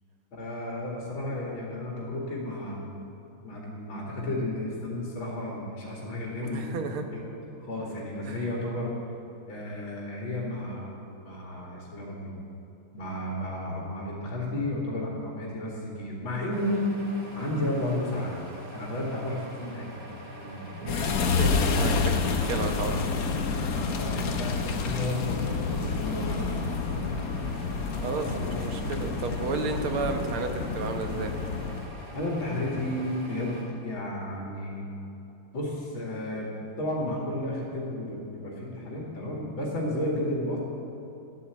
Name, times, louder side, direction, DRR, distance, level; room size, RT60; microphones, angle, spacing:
voice 1, 0.3-2.8 3.4-6.8 7.1-7.2 7.6-9.0 9.5-10.9 11.2-12.3 12.9-17.0 17.4-18.4 18.7-20.0 20.4-20.9 23.6-27.3 28.0-29.0 32.1-34.9 35.5-40.6, left 1 dB, 70° left, -4 dB, 2.9 m, -33 dB
voice 2, 6.4-7.1 8.3-8.5 20.8-23.0 28.0-31.3, right 4 dB, 90° right, 5 dB, 2.1 m, -32 dB
sound 1, 16.5-33.6, right 1 dB, 50° right, 3.6 m, -45 dB
sound 2, 20.9-31.9, left 4 dB, 55° left, 1.2 m, -29 dB
13.0 x 11.0 x 8.0 m, 2.9 s
omnidirectional pair, 2.3 m